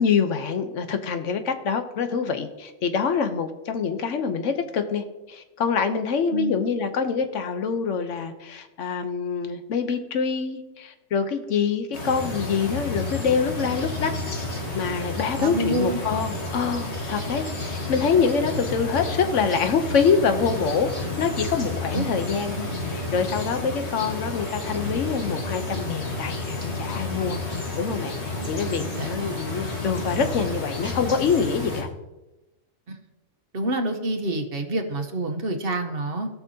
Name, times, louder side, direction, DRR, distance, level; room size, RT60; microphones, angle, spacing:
voice 1, 0.0-14.1 14.7-27.4 27.8-31.9, left 6 dB, 70° left, 8 dB, 1.1 m, -25 dB
sound 1, 11.9-31.8, left 2 dB, 55° left, 1.8 m, -31 dB
voice 2, 15.4-16.0 21.9-22.1 28.9-29.3 32.9-33.0 33.5-36.3, right 2 dB, 50° right, 5 dB, 1.1 m, -27 dB
17.5 x 6.0 x 2.8 m, 1.0 s
omnidirectional pair, 1.4 m